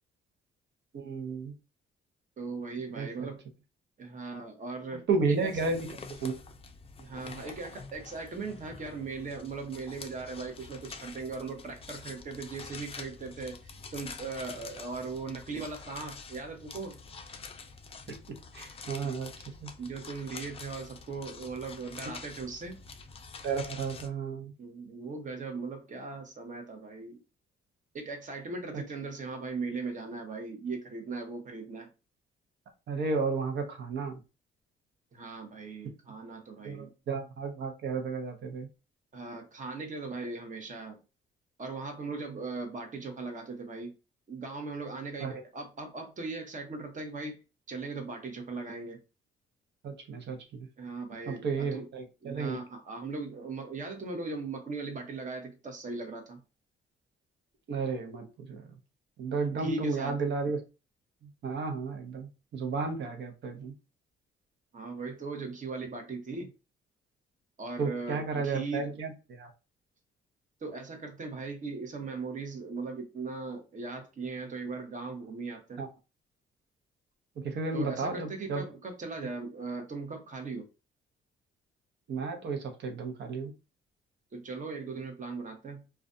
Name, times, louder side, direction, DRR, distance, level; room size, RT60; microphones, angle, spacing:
voice 1, 0.9-1.5 3.0-3.3 5.1-6.3 18.1-18.2 18.5-19.3 19.6-19.7 23.4-24.5 28.7-28.8 32.9-34.2 36.6-38.7 45.2-45.3 49.8-50.7 51.3-52.6 57.7-58.7 59.2-60.6 61.4-63.7 67.8-69.5 75.8-75.9 77.4-78.6 82.1-83.5, right 4 dB, 60° right, 0.8 m, -33 dB
voice 2, 2.4-3.4 4.0-5.5 7.0-17.0 19.0-19.2 19.8-22.8 24.6-27.2 27.9-31.9 35.1-36.9 39.1-41.0 41.6-43.9 44.3-47.4 47.7-49.0 50.8-51.9 52.2-56.4 59.6-60.2 64.7-66.5 67.6-69.0 70.6-75.8 77.7-80.7 84.3-85.8, right 4 dB, 40° right, 0.9 m, -39 dB
sound 1, 5.3-24.1, left 4 dB, 30° left, 0.4 m, -47 dB
2.4 x 2.2 x 2.5 m
cardioid pair, 90°, 20 cm